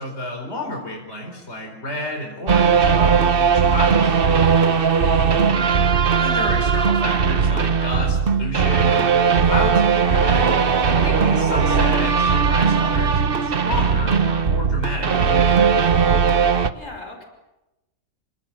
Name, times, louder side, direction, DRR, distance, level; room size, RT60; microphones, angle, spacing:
voice 1, 0.0-4.2 6.2-10.7 11.0-15.7, left 1 dB, 55° left, 2 dB, 4.7 m, -30 dB
sound 1, 2.5-16.7, right 6 dB, 45° right, 1.2 m, -18 dB
voice 2, 4.7-5.3 16.7-17.3, left 2 dB, 70° left, 3 dB, 5.6 m, -39 dB
27.5 x 26.0 x 7.5 m, 0.99 s
omnidirectional pair, 1.4 m